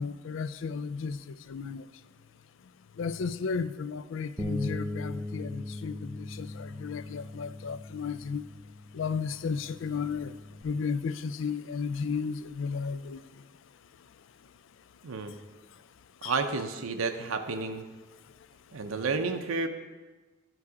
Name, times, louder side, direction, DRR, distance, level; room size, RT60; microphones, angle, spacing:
voice 1, 0.0-1.8 3.0-8.4 8.9-10.3 10.6-13.2 16.2-16.3, left 5 dB, 65° left, 14 dB, 0.4 m, -34 dB
Bass guitar, 4.4-10.6, left 1 dB, 10° right, 0.5 m, -39 dB
voice 2, 15.0-15.3 16.2-17.8 18.7-19.7, right 4 dB, 85° right, 6 dB, 0.6 m, -31 dB
11.0 x 4.7 x 4.9 m, 1.3 s
head